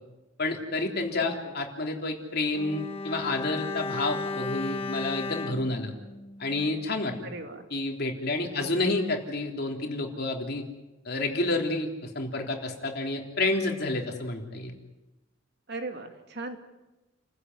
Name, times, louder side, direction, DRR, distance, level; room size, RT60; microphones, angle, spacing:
voice 1, 0.4-5.9 6.4-7.3 7.7-10.6 11.1-14.7, left 2 dB, 55° left, 2 dB, 3.6 m, -29 dB
voice 2, 1.2-1.6 7.2-7.6 8.6-9.0 15.7-16.6, right 2 dB, 55° right, 6 dB, 2.5 m, -38 dB
Bowed string instrument, 2.5-7.0 7.2-7.4, left 3 dB, 30° left, 1.1 m, -35 dB
30.0 x 16.0 x 9.7 m, 1.1 s
head